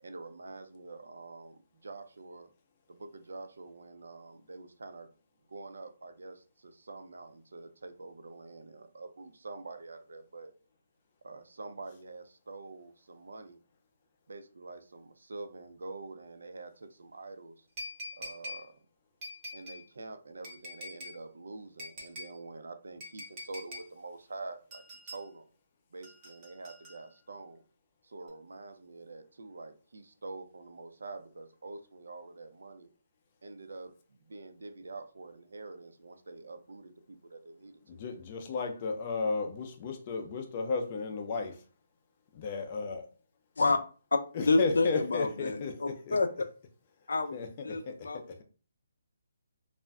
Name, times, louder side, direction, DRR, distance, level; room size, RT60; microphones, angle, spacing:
voice 1, 0.0-2.5 2.9-5.1 5.5-10.5 11.2-13.6 14.3-17.7 18.1-18.8 19.5-24.8 25.1-25.5 25.9-27.6 28.0-32.9 33.4-38.0, right 3 dB, 90° right, 0.5 m, -46 dB
sound 1, 17.8-18.6 19.2-19.8 20.4-21.2 21.8-22.3 23.0-23.9 24.7-25.2 26.0-27.2 28.3-28.4, left 1 dB, 20° right, 0.7 m, -44 dB
voice 2, 37.9-41.6 42.3-43.1 44.3-46.2 47.3-48.4, left 4 dB, 25° left, 0.4 m, -34 dB
voice 3, 44.5-46.3 47.1-48.2, left 3 dB, 90° left, 0.5 m, -28 dB
2.5 x 2.1 x 3.4 m
hypercardioid pair, 175°, 0 cm